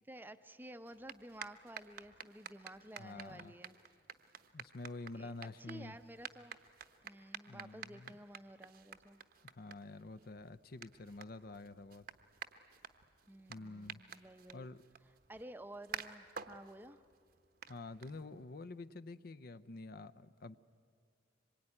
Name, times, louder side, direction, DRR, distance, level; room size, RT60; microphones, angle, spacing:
voice 1, 0.1-3.8 5.1-5.3 5.6-6.6 7.0-9.2 13.3-14.7 15.3-17.0, right 1 dB, 10° right, 11 dB, 0.6 m, -52 dB
sound 1, 0.8-18.6, right 7 dB, 50° right, 0.9 m, -52 dB
voice 2, 3.0-3.5 4.5-6.0 7.5-8.1 9.4-12.1 13.5-14.0 14.5-14.8 17.7-20.6, left 3 dB, 50° left, 14 dB, 0.6 m, -48 dB
25.5 x 22.0 x 9.8 m, 2.1 s
head